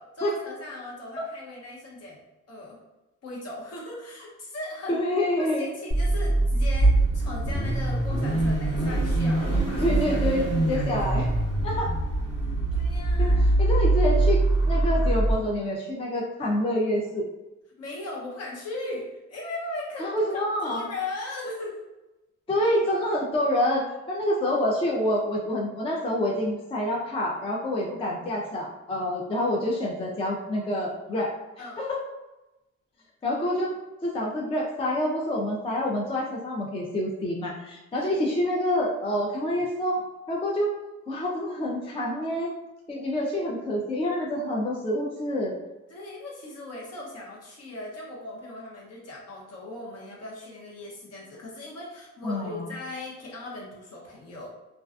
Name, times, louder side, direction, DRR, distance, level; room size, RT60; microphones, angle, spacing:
voice 1, 0.0-2.2 2.5-2.8 3.2-5.0 5.4-11.4 12.7-13.5 17.8-21.8 31.6-31.8 37.9-38.2 45.9-54.5, left 2 dB, 55° left, -3 dB, 0.9 m, -38 dB
voice 2, 4.9-5.7 9.8-11.3 11.6-11.9 13.2-13.3 13.6-14.4 14.7-17.2 20.0-20.9 22.5-31.3 31.8-32.0 33.2-33.8 34.0-40.0 40.3-40.7 41.1-42.5 42.9-45.6 52.2-52.7, left 1 dB, 20° left, -1 dB, 0.3 m, -27 dB
Car / Idling / Accelerating revving vroom, 5.9-15.3, right 2 dB, 70° left, 1.4 m, -23 dB
2.4 x 2.2 x 2.4 m, 1.0 s
cardioid pair, 90°, 30 cm